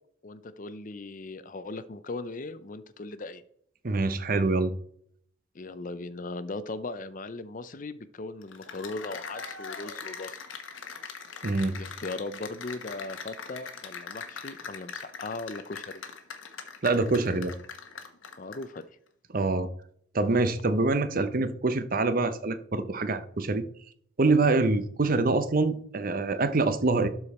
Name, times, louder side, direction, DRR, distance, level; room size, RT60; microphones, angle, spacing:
voice 1, 0.2-3.4 5.5-10.4 11.7-16.0 18.4-18.8, left 2 dB, 40° left, 14 dB, 0.5 m, -38 dB
voice 2, 3.8-4.7 11.4-11.8 16.8-17.5 19.3-19.7 20.1-23.6 24.2-27.1, right 3 dB, 45° right, 11 dB, 0.7 m, -25 dB
Cheering / Applause, 8.4-18.8, left 5 dB, 75° left, 1.2 m, -41 dB
12.0 x 4.8 x 4.2 m, 0.65 s
head